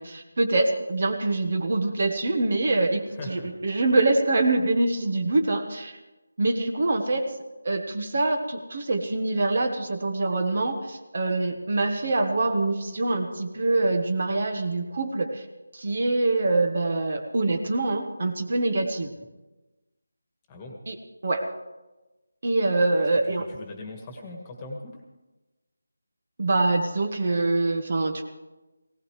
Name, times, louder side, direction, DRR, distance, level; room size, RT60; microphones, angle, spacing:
voice 1, 0.0-6.0 6.4-7.3 7.6-15.5 15.7-19.1 20.9-21.0 21.2-21.5 22.4-23.5 26.4-28.2, right 2 dB, 45° right, 6 dB, 1.3 m, -25 dB
voice 2, 3.2-3.5 19.2-19.3 20.5-20.8 23.3-25.0, left 2 dB, 15° left, 1 dB, 1.7 m, -40 dB
18.5 x 18.0 x 3.3 m, 1.1 s
figure-of-eight pair, 175°, 0 cm